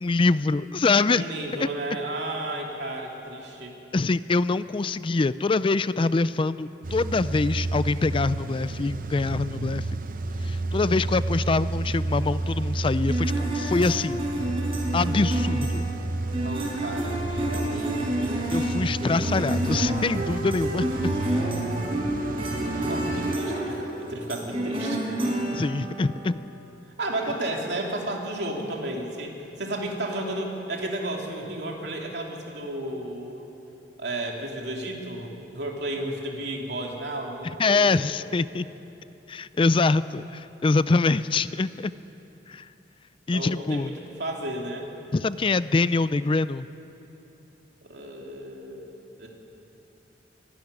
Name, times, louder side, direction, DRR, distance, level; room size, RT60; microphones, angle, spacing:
voice 1, 0.0-1.2 1.5-1.7 3.9-9.9 10.4-14.2 14.9-15.9 18.5-21.1 25.5-26.4 37.6-38.7 39.3-41.9 42.5-42.7 43.3-43.9 45.1-46.7, left 3 dB, 30° left, 15 dB, 0.4 m, -24 dB
voice 2, 1.1-3.7 16.4-18.4 22.9-25.0 27.0-33.5 34.0-38.1 38.5-38.7 43.3-43.9 44.2-44.9 47.8-49.3, right 1 dB, 70° right, 0 dB, 3.2 m, -33 dB
Car / Engine starting / Idling, 6.8-23.4, right 2 dB, 50° right, 0.8 m, -30 dB
sound 1, 13.1-26.3, right 1 dB, 35° right, 4.8 m, -29 dB
24.0 x 12.5 x 10.0 m, 3.0 s
head